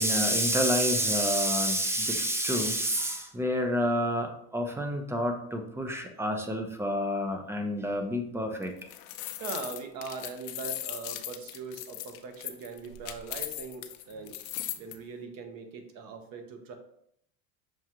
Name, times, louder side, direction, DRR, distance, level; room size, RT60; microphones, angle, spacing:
voice 1, 0.0-8.7, equal, 5° right, 5 dB, 0.4 m, -28 dB
sound 1, 8.6-14.9, left 13 dB, 60° left, 0.5 m, -38 dB
voice 2, 9.2-14.4 14.8-16.7, right 4 dB, 55° right, 6 dB, 0.9 m, -41 dB
6.0 x 2.4 x 2.8 m, 0.70 s
supercardioid pair, 110°, 41 cm